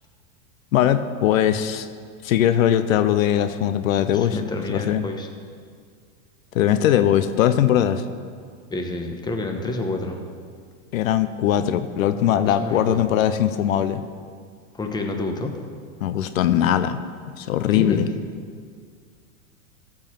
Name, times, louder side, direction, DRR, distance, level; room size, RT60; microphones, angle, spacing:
voice 1, 0.7-1.9 2.2-4.4 4.7-5.0 6.5-8.0 10.9-14.0 16.0-17.0 17.4-18.1, left 10 dB, 80° left, 11 dB, 0.7 m, -20 dB
voice 2, 4.1-5.3 8.7-10.2 12.2-13.1 14.7-15.5 17.7-18.1, left 2 dB, 10° left, 3 dB, 1.1 m, -29 dB
13.5 x 4.9 x 7.3 m, 2.1 s
hypercardioid pair, 120°, 40 cm